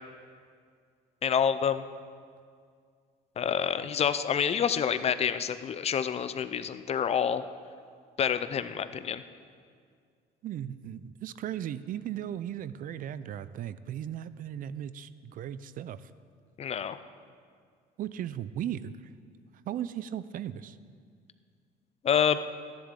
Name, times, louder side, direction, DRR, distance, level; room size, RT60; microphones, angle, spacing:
voice 1, 1.2-1.8 3.4-7.4 8.2-9.2 16.6-17.0 22.0-22.4, left 8 dB, 40° left, 12 dB, 0.5 m, -27 dB
voice 2, 10.4-16.1 18.0-19.0 19.7-20.8, right 10 dB, 55° right, 15 dB, 0.4 m, -37 dB
14.5 x 10.5 x 3.7 m, 2.1 s
cardioid pair, 110°, 17 cm